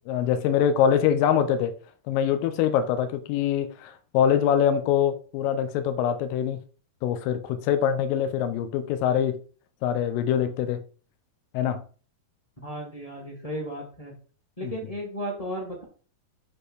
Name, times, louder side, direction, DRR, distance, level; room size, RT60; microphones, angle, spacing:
voice 1, 0.1-1.7 2.1-6.6 7.0-9.4 9.8-10.8 11.5-11.8 14.6-14.7, left 9 dB, 75° left, 2.4 m, -24 dB
voice 2, 12.6-14.1 14.6-15.8, equal, 20° left, 1.0 m, -34 dB
7.8 x 3.4 x 6.4 m
omnidirectional pair, 4.3 m